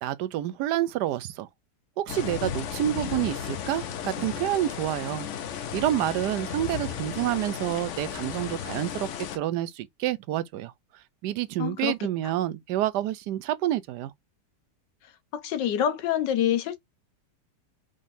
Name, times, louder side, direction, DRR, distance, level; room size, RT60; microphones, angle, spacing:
voice 1, 0.0-1.5 2.0-5.3 5.7-10.7 11.2-14.1, right 13 dB, 75° right, 1.1 m, -28 dB
sound 1, 2.1-9.4, left 8 dB, 60° left, 0.8 m, -34 dB
voice 2, 11.6-11.9 15.3-16.8, left 10 dB, 85° left, 1.5 m, -26 dB
5.0 x 3.7 x 2.6 m
omnidirectional pair, 1.9 m